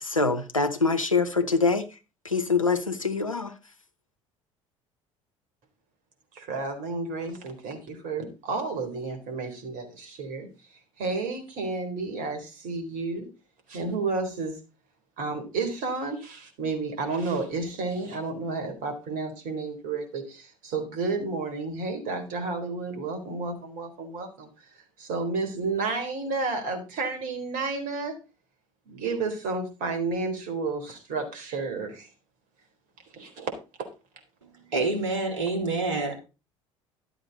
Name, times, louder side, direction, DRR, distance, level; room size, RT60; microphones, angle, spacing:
voice 1, 0.0-1.9 2.2-3.5, left 4 dB, 90° left, 0.9 m, -24 dB
voice 2, 6.3-10.5 11.0-13.2 13.7-14.6 15.2-24.5 25.0-28.2 28.9-32.1 33.1-33.5, right 3 dB, 55° right, 3.9 m, -31 dB
voice 3, 34.7-36.1, right 3 dB, 70° right, 3.5 m, -27 dB
12.5 x 8.0 x 4.1 m
figure-of-eight pair, 60°, 17 cm